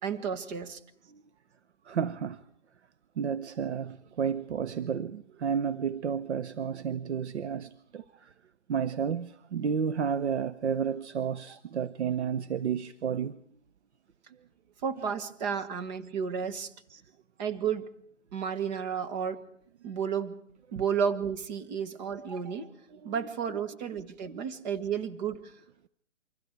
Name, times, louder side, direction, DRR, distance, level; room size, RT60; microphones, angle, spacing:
voice 1, 0.0-0.8 14.8-16.7 17.4-17.9 18.3-19.4 19.8-20.4 20.7-22.7 23.0-25.6, right 7 dB, 35° right, 1.7 m, -32 dB
voice 2, 1.8-2.4 3.2-8.3 8.7-13.4 16.9-17.0 22.9-23.1, right 7 dB, 60° right, 0.8 m, -31 dB
29.0 x 24.5 x 4.6 m
figure-of-eight pair, 135°, 37 cm